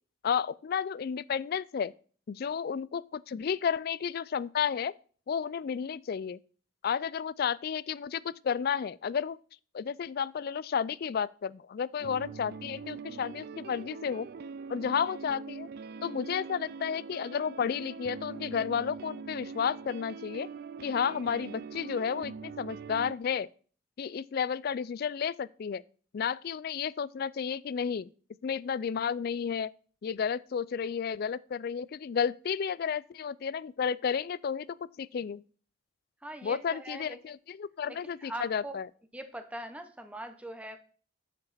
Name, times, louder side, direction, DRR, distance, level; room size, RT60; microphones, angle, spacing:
voice 1, 0.2-1.9 2.3-4.9 5.3-6.4 6.8-9.4 9.7-14.3 14.7-15.7 16.0-20.5 20.8-23.5 24.0-25.8 26.1-28.1 28.4-29.7 30.0-35.4 36.4-38.9, left 7 dB, 50° left, 0.3 m, -32 dB
sound 1, 12.0-23.1, right 5 dB, 50° right, 0.3 m, -43 dB
voice 2, 36.2-37.2 37.9-38.7 39.1-40.8, right 1 dB, 5° right, 0.9 m, -42 dB
9.4 x 7.3 x 4.2 m
head